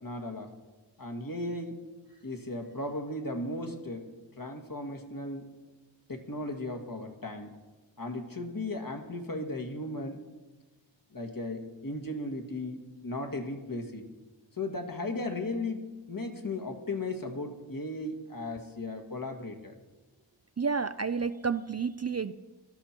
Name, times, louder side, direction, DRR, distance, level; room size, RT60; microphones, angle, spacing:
voice 1, 0.0-0.5 1.0-1.7 2.2-4.1 4.4-5.4 6.1-7.5 8.0-10.2 11.1-14.0 14.6-19.8, left 2 dB, 45° left, 4 dB, 1.8 m, -36 dB
voice 2, 20.6-22.3, right 5 dB, 35° right, 12 dB, 0.4 m, -30 dB
16.5 x 13.0 x 4.4 m, 1.2 s
wide cardioid pair, 60°, 45 cm